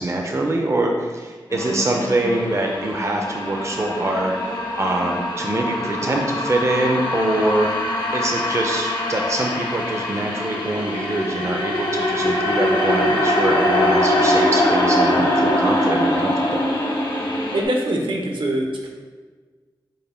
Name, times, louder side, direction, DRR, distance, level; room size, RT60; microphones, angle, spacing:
voice 1, 0.0-7.7 8.1-16.6, right 2 dB, 35° right, 1 dB, 0.5 m, -24 dB
sound 1, 1.5-17.6, left 1 dB, 55° left, 0.8 m, -22 dB
voice 2, 17.5-18.9, right 1 dB, 75° right, 0 dB, 0.7 m, -23 dB
5.4 x 2.2 x 4.2 m, 1.4 s
wide cardioid pair, 85°, 9 cm